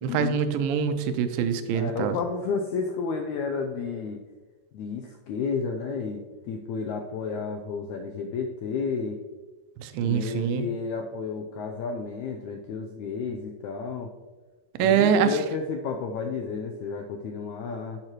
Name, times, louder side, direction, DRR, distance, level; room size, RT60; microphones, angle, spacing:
voice 1, 0.0-2.2 9.8-10.7 14.8-15.3, right 8 dB, 90° right, 9 dB, 2.4 m, -24 dB
voice 2, 1.7-4.2 4.7-9.2 10.0-14.1 14.8-18.0, left 5 dB, 85° left, 3 dB, 1.7 m, -32 dB
10.5 x 7.8 x 3.0 m, 1.3 s
omnidirectional pair, 4.1 m